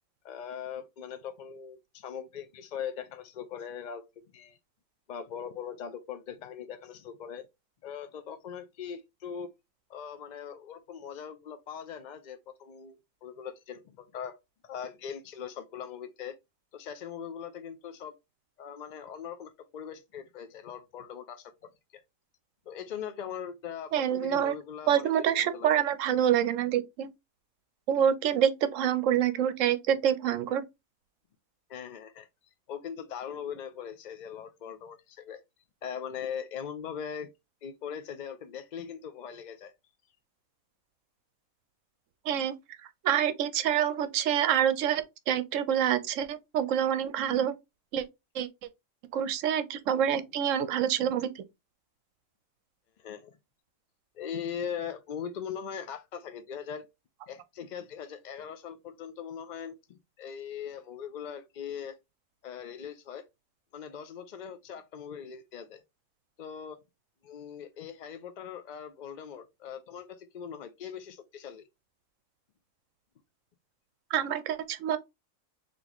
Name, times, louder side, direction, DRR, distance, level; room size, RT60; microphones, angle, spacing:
voice 1, 0.2-4.0 4.3-4.6 5.1-7.5 7.8-9.5 9.9-13.0 13.2-14.4 14.6-16.4 16.7-18.2 18.6-22.0 22.7-25.8 31.7-32.3 32.7-35.4 35.8-37.3 37.6-39.7 53.0-53.4 54.1-56.9 57.3-62.0 62.4-63.2 63.7-65.8 66.4-66.8 67.2-71.7, left 8 dB, 70° left, 0.4 m, -40 dB
voice 2, 23.9-24.6 24.9-27.1 27.9-30.6 42.3-42.5 43.0-47.5 47.9-48.0 48.3-48.5 49.1-51.3 74.1-75.0, right 9 dB, 70° right, 1.0 m, -26 dB
4.0 x 3.3 x 2.9 m
omnidirectional pair, 1.4 m